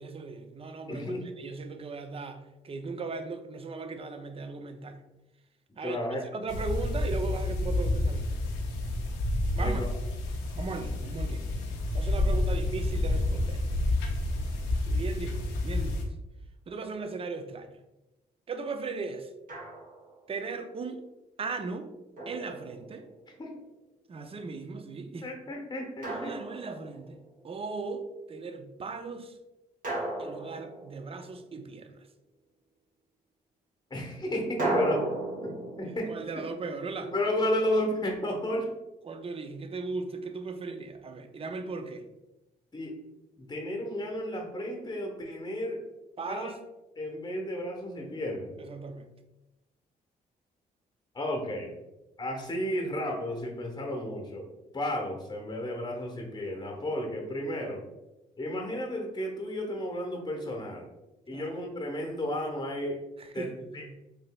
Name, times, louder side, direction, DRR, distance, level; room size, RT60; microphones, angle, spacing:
voice 1, 0.0-1.0 1.4-5.0 5.8-6.0 6.3-8.3 9.6-9.8 10.6-11.5 11.9-13.6 14.8-16.1 16.7-17.8 18.5-19.3 20.3-21.0 21.4-21.9 22.3-23.1 24.1-25.3 26.1-27.2 27.4-29.4 30.2-32.0 35.8-37.1 39.0-42.1 46.2-46.6 48.6-49.1 61.3-61.5 63.3-64.0, right 4 dB, 30° right, 0.4 m, -37 dB
voice 2, 0.9-1.2 5.8-6.2 9.6-9.9 23.4-23.5 25.2-26.4 33.9-35.1 35.4-36.1 37.1-38.7 42.7-43.0 43.4-45.8 46.3-46.5 47.0-48.5 51.1-51.7 52.2-54.5 54.7-57.8 58.4-60.9 61.3-63.0 63.3-63.9, left 1 dB, 20° left, 0.8 m, -33 dB
sound 1, 6.5-16.1, left 2 dB, 85° left, 0.5 m, -29 dB
Drum, 19.5-20.2 22.2-23.3 26.0-27.2 29.8-31.5 34.6-37.6, right 2 dB, 50° right, 1.3 m, -35 dB
3.8 x 2.6 x 2.2 m
supercardioid pair, 50°, 19 cm